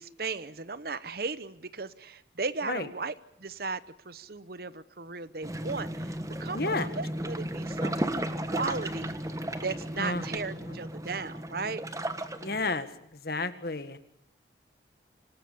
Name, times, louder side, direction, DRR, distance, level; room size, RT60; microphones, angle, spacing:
voice 1, 0.0-8.2 8.5-9.1 9.6-11.8, right 4 dB, 55° right, 15 dB, 1.0 m, -36 dB
sound 1, 5.4-12.8, right 1 dB, 15° right, 1.4 m, -34 dB
voice 2, 6.5-6.9 10.0-10.2 12.4-12.9 13.2-14.0, left 3 dB, 55° left, 11 dB, 1.7 m, -31 dB
26.0 x 19.0 x 8.5 m, 0.74 s
head